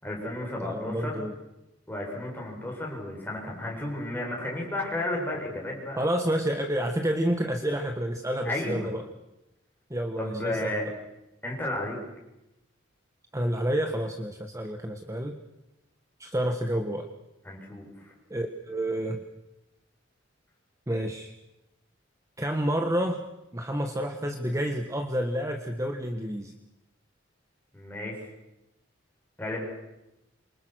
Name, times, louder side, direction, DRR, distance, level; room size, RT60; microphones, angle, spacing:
voice 1, 0.0-1.2 1.9-6.0 8.4-8.9 10.2-10.8 11.4-12.0 17.4-17.9 27.7-28.2 29.4-29.6, left 1 dB, 10° left, -2 dB, 8.0 m, -33 dB
voice 2, 0.6-1.3 6.0-9.0 9.9-10.8 13.3-15.4 16.2-17.1 18.3-19.2 20.9-21.3 22.4-23.2 23.5-26.5, equal, 15° right, 5 dB, 1.4 m, -29 dB
27.5 x 24.5 x 6.3 m, 0.93 s
head